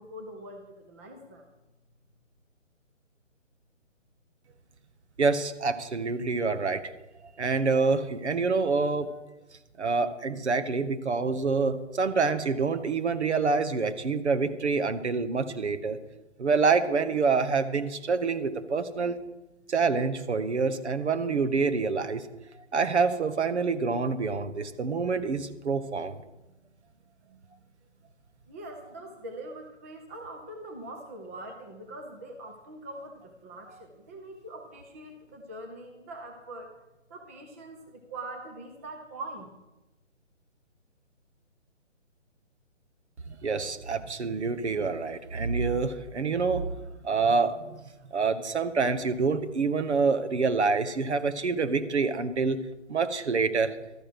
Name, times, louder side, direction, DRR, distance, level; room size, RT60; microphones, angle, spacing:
voice 1, 0.0-1.5 28.5-36.7 37.1-39.5, right 2 dB, 10° right, 3 dB, 0.6 m, -43 dB
voice 2, 5.2-6.9 7.2-9.2 9.8-16.0 16.4-19.2 19.7-22.3 22.7-26.2 43.3-47.8 48.1-52.6 52.9-53.8, right 4 dB, 65° right, 11 dB, 1.2 m, -27 dB
12.5 x 9.9 x 6.1 m, 1.0 s
figure-of-eight pair, 145°, 37 cm